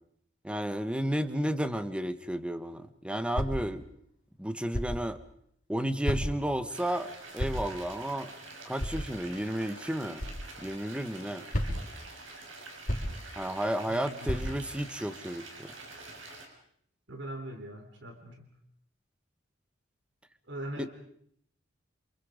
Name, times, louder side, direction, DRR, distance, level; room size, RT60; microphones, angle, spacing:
voice 1, 0.4-3.8 4.4-5.2 5.7-8.3 8.7-10.2 10.6-11.5 13.4-15.7 20.8-20.9, equal, 5° right, 11 dB, 1.3 m, -32 dB
sound 1, 3.3-3.7 4.7-5.1 6.0-6.5 7.4-7.8 8.8-9.1 10.2-10.4 11.5-12.0 12.9-13.3 14.3-14.7, equal, 45° left, 5.1 m, -32 dB
sound 2, 6.7-16.5, right 2 dB, 90° right, 5.7 m, -47 dB
voice 2, 17.1-18.5 20.5-20.9, right 1 dB, 65° right, 4 dB, 3.3 m, -41 dB
29.0 x 27.5 x 5.1 m, 0.68 s
head